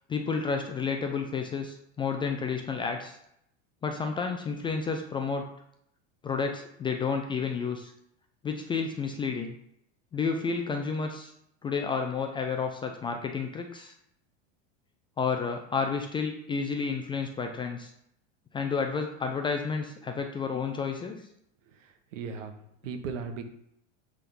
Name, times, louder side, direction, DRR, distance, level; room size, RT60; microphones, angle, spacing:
voice 1, 0.1-3.2 3.8-5.5 6.2-7.9 8.4-9.6 10.1-11.3 11.6-13.9 15.2-17.9 18.5-21.2, left 5 dB, 15° left, 4 dB, 0.4 m, -31 dB
voice 2, 21.7-23.4, right 5 dB, 85° right, 6 dB, 1.4 m, -38 dB
8.4 x 3.7 x 5.4 m, 0.74 s
supercardioid pair, 145°, 37 cm